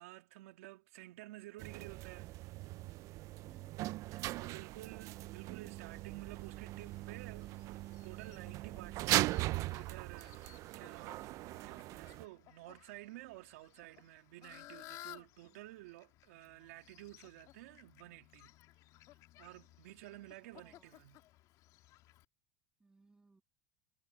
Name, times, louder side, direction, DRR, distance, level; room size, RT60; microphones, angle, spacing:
voice 1, 0.0-2.3 4.4-18.5 19.4-21.2, right 18 dB, 75° right, 1.9 m, -53 dB
sound 1, 1.6-12.2, right 18 dB, 45° right, 0.4 m, -39 dB
voice 2, 3.4-3.8 15.4-15.6 20.3-21.1 22.8-23.4, right 3 dB, 10° right, 2.2 m, -67 dB
Fowl, 5.9-22.2, left 15 dB, 50° left, 1.9 m, -59 dB
supercardioid pair, 125°, 7 cm